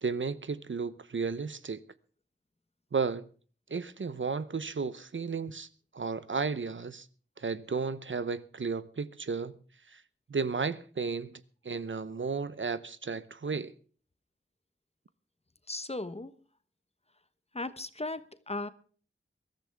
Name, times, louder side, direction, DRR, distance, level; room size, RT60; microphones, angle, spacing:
voice 1, 0.0-1.8 2.9-3.2 3.7-5.7 5.9-7.1 7.4-9.6 9.9-10.0 10.3-13.7, right 5 dB, 65° right, 0.8 m, -33 dB
voice 2, 15.7-16.3 17.5-18.7, left 2 dB, 30° left, 1.1 m, -36 dB
22.0 x 14.0 x 3.5 m
wide cardioid pair, 65°, 21 cm